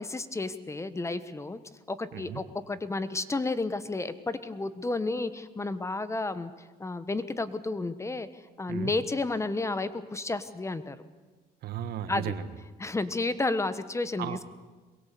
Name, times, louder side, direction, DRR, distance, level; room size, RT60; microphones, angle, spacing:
voice 1, 0.0-1.6 1.9-6.5 6.8-8.3 8.6-11.0 12.1-12.3 12.8-14.4, left 3 dB, 15° left, 13 dB, 1.3 m, -31 dB
voice 2, 11.6-12.5 14.2-14.4, right 10 dB, 70° right, 12 dB, 1.5 m, -35 dB
23.0 x 21.5 x 8.5 m, 1.3 s
cardioid pair, 110°, 17 cm